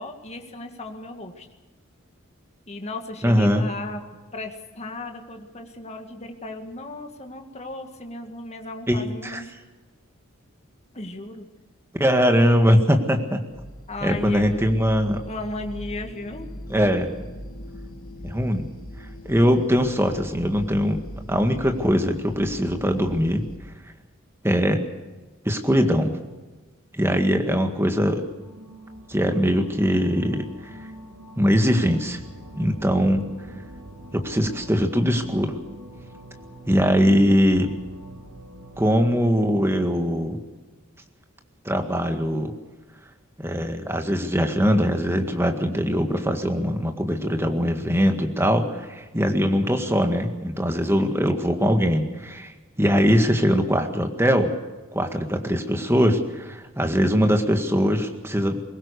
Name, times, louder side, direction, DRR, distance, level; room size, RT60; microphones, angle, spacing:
voice 1, 0.0-1.5 2.7-4.0 4.3-9.4 10.9-11.5 13.9-14.8 15.2-16.5 32.6-33.2 51.0-51.3, left 2 dB, 30° left, 4 dB, 2.0 m, -35 dB
voice 2, 3.2-3.7 8.9-9.4 12.0-13.4 14.0-15.2 16.7-17.1 18.2-18.7 19.3-21.0 21.3-23.4 24.4-24.8 25.5-26.2 26.9-28.2 29.1-30.5 31.4-32.2 32.6-33.2 34.1-35.6 36.7-37.7 38.8-40.4 41.7-42.5 43.4-52.5 52.8-54.5 54.9-58.6, equal, 10° right, 5 dB, 1.9 m, -21 dB
sound 1, 13.5-23.6, equal, 85° left, 3.2 m, -40 dB
sound 2, 27.4-39.1, right 1 dB, 80° right, 2.8 m, -44 dB
22.0 x 19.0 x 6.7 m, 1.2 s
head